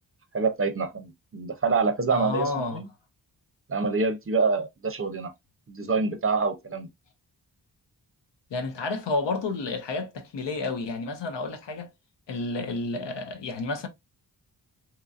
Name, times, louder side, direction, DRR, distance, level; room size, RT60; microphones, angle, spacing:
voice 1, 0.3-2.9 3.7-5.3 5.7-6.9, right 4 dB, 35° right, 0.6 m, -26 dB
voice 2, 2.1-2.8 8.5-11.9 12.3-13.9, left 3 dB, 90° left, 0.8 m, -30 dB
2.9 x 2.6 x 2.3 m
wide cardioid pair, 90°, 41 cm